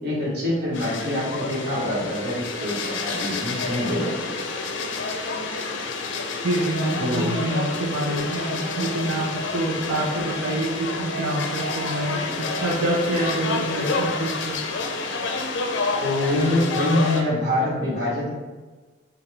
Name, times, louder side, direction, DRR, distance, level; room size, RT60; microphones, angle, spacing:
voice 1, 0.0-4.3 7.0-7.3 16.0-18.3, left 1 dB, 50° right, -6 dB, 1.4 m, -25 dB
sound 1, 0.7-17.2, left 3 dB, 70° left, 0.5 m, -29 dB
voice 2, 6.4-14.6, right 1 dB, 80° right, -5 dB, 0.6 m, -26 dB
5.5 x 2.3 x 3.3 m, 1.3 s
head